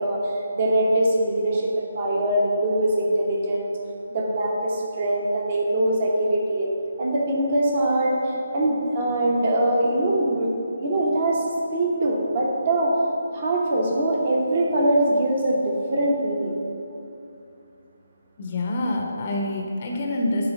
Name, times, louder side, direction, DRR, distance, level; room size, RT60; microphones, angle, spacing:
voice 1, 0.0-3.7 4.1-6.7 7.0-10.5 10.8-11.4 11.7-12.9 13.3-16.6, right 1 dB, 40° right, -1 dB, 1.1 m, -22 dB
voice 2, 18.4-20.5, left 1 dB, 35° left, 1 dB, 0.7 m, -26 dB
7.3 x 3.2 x 6.0 m, 2.7 s
figure-of-eight pair, 145°, 0 cm